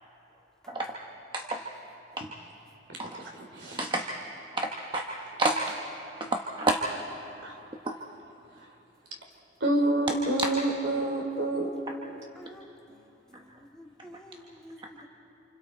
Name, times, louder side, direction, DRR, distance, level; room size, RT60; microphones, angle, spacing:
voice 1, 3.2-3.8 7.4-7.6 9.6-11.7, right 1 dB, 75° right, 2 dB, 3.1 m, -28 dB
voice 2, 4.6-5.1 5.4-5.8 6.2-6.8 7.9-8.0 10.4-10.5, right 2 dB, 25° right, 1 dB, 1.0 m, -29 dB
voice 3, 12.4-15.1, equal, 5° left, -2 dB, 2.1 m, -51 dB
29.0 x 27.5 x 4.4 m, 2.9 s
head